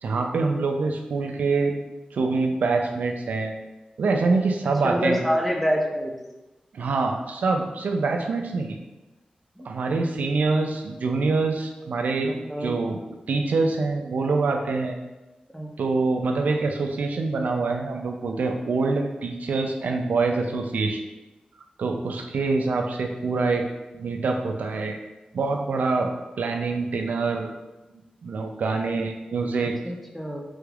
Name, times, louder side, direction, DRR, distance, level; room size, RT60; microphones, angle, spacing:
voice 1, 0.0-1.7 2.1-3.5 4.0-5.2 6.7-8.8 9.6-12.3 12.6-13.0 13.3-15.0 15.8-21.0 21.8-23.7 23.9-25.0 25.3-26.1 26.4-27.5 28.2-29.8, right 3 dB, 85° right, 3 dB, 0.3 m, -25 dB
voice 2, 4.8-6.1 9.6-9.7 12.2-12.7 15.5-15.7 29.8-30.4, equal, 5° left, 0 dB, 0.5 m, -26 dB
3.4 x 2.3 x 3.3 m, 1.1 s
wide cardioid pair, 95°, 3 cm